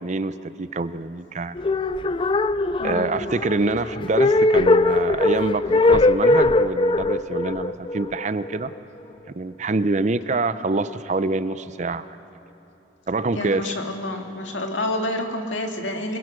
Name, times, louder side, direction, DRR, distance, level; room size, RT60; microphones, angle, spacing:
voice 1, 0.0-1.6 2.8-8.7 9.4-12.1 13.1-13.7, right 3 dB, 40° right, 13 dB, 0.6 m, -26 dB
sound 1, 1.5-8.7, left 2 dB, 30° left, 0.4 m, -20 dB
voice 2, 2.8-3.1 13.3-16.2, left 1 dB, 90° left, 3 dB, 2.1 m, -28 dB
26.5 x 21.0 x 6.3 m, 3.0 s
head